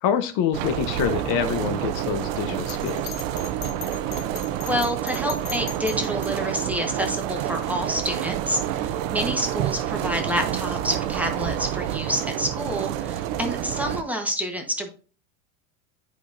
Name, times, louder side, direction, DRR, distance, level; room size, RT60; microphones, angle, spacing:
voice 1, 0.0-3.1, left 8 dB, 50° left, 10 dB, 0.7 m, -26 dB
sound 1, 0.5-14.0, right 11 dB, 60° right, 0.7 m, -28 dB
Bell, 2.7-6.3, left 10 dB, 75° left, 1.2 m, -38 dB
voice 2, 4.7-14.9, equal, 5° right, 3 dB, 1.1 m, -28 dB
9.4 x 5.0 x 2.6 m, 0.39 s
supercardioid pair, 125°, 39 cm